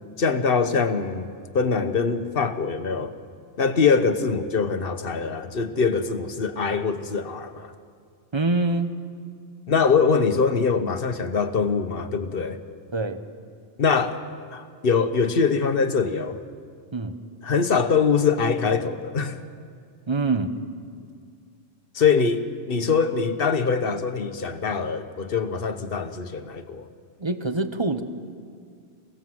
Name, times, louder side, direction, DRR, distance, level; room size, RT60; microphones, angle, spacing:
voice 1, 0.2-1.3 1.5-3.1 3.6-7.7 9.7-12.6 13.8-14.2 14.5-16.4 17.4-19.4 21.9-26.9, left 5 dB, 55° left, 9 dB, 1.2 m, -23 dB
voice 2, 8.3-8.9 12.9-13.2 16.9-17.2 20.1-20.5 27.2-28.0, right 3 dB, 25° right, 9 dB, 1.0 m, -24 dB
27.0 x 17.0 x 7.8 m, 2.2 s
omnidirectional pair, 1.2 m